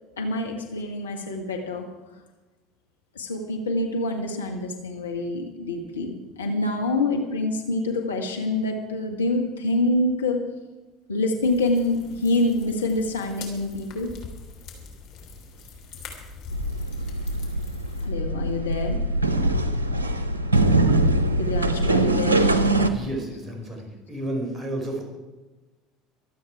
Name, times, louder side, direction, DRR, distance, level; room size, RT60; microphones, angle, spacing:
voice 1, 0.2-1.9 3.1-10.5 11.1-14.1 18.0-19.1 21.4-22.5, left 2 dB, 80° left, 3 dB, 1.6 m, -26 dB
sound 1, 11.4-18.1, left 4 dB, 55° left, 3.4 m, -42 dB
sound 2, 16.5-22.9, right 2 dB, 85° right, 0.9 m, -22 dB
voice 2, 22.9-25.0, right 1 dB, 15° right, 1 dB, 4.8 m, -31 dB
24.0 x 8.7 x 4.8 m, 1.2 s
figure-of-eight pair, 65°, 0 cm